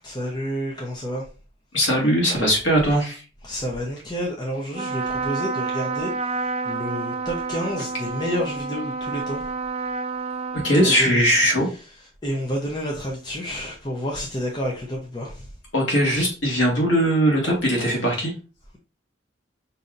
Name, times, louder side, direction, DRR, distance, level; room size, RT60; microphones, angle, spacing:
voice 1, 0.0-1.2 3.4-6.1 6.7-9.4 11.0-11.2 12.2-15.4, equal, 20° left, -2 dB, 0.6 m, -29 dB
voice 2, 1.7-3.2 10.6-11.7 15.7-18.3, equal, 80° left, -1 dB, 1.6 m, -20 dB
Trumpet, 4.7-11.5, right 4 dB, 30° right, 0.5 m, -29 dB
5.3 x 2.7 x 2.5 m, 0.35 s
head